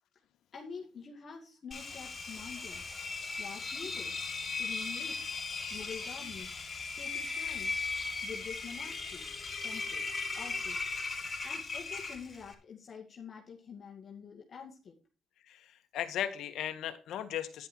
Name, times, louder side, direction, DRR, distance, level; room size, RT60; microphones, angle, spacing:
voice 1, 0.5-2.8 3.4-4.2 4.5-5.3 5.7-6.5 6.9-7.7 8.2-9.3 9.6-10.1 10.4-10.9 11.4-15.0, left 6 dB, 50° left, 0 dB, 2.2 m, -47 dB
Engine, 1.7-12.5, left 4 dB, 30° left, 4.1 m, -38 dB
voice 2, 15.5-17.7, left 10 dB, 80° left, 9 dB, 1.6 m, -37 dB
10.5 x 10.5 x 4.5 m, 0.32 s
cardioid pair, 90°, 0 cm